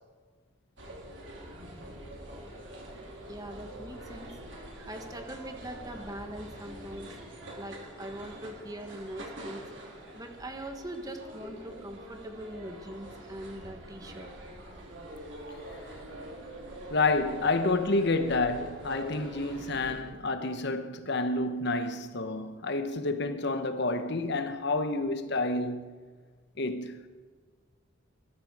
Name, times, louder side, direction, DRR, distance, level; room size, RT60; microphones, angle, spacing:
sound 1, 0.8-20.0, right 1 dB, 60° right, 3.8 m, -45 dB
voice 1, 3.3-4.3 4.8-7.1 7.6-9.6 10.1-14.3, right 1 dB, 15° right, 1.5 m, -42 dB
voice 2, 16.9-25.9 26.6-27.0, left 2 dB, 55° left, 1.0 m, -29 dB
20.5 x 13.5 x 4.8 m
head